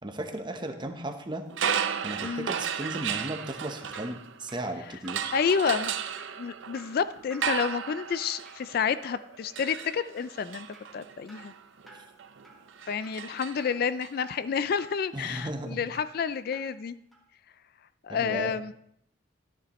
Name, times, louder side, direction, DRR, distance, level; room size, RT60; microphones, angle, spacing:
voice 1, 0.0-1.4 2.0-5.3 11.9-12.0 15.1-15.9 18.1-18.5, right 1 dB, 25° right, 6 dB, 0.9 m, -35 dB
Drip, 1.3-16.8 17.1-17.2, right 1 dB, ahead, 1.5 m, -54 dB
sound 1, 1.5-4.6 5.1-14.1, right 8 dB, 75° right, 0.6 m, -35 dB
voice 2, 5.3-5.9 6.4-10.7 10.9-11.5 12.9-17.0 18.0-18.7, left 6 dB, 50° left, 14 dB, 0.3 m, -29 dB
13.0 x 10.0 x 3.0 m, 0.71 s
head